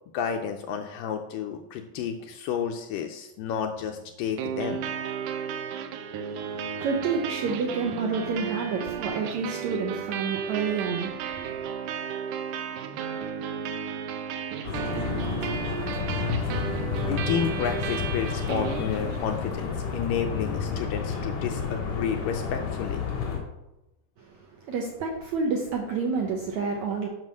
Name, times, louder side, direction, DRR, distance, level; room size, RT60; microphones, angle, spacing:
voice 1, 0.1-4.9 17.0-23.0, left 7 dB, 80° left, 4 dB, 2.0 m, -31 dB
sound 1, 4.4-19.4, right 8 dB, 90° right, 1.8 m, -34 dB
voice 2, 6.3-11.8 24.2-27.1, right 5 dB, 70° right, 1 dB, 1.8 m, -29 dB
sound 2, 14.6-23.4, left 6 dB, 55° left, 3.1 m, -30 dB
9.4 x 5.5 x 6.3 m, 0.93 s
omnidirectional pair, 4.5 m